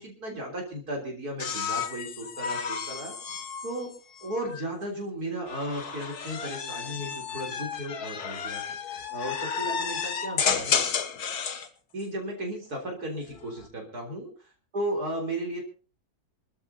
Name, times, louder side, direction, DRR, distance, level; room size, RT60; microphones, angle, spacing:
voice 1, 0.0-3.1 3.6-3.9 4.2-8.6 9.1-10.8 11.9-15.6, right 1 dB, 70° right, 0 dB, 4.2 m, -35 dB
sound 1, 1.4-4.7 5.5-11.7 13.1-13.7, left 6 dB, 75° left, 1.9 m, -32 dB
27.0 x 13.5 x 2.8 m, 0.38 s
omnidirectional pair, 1.7 m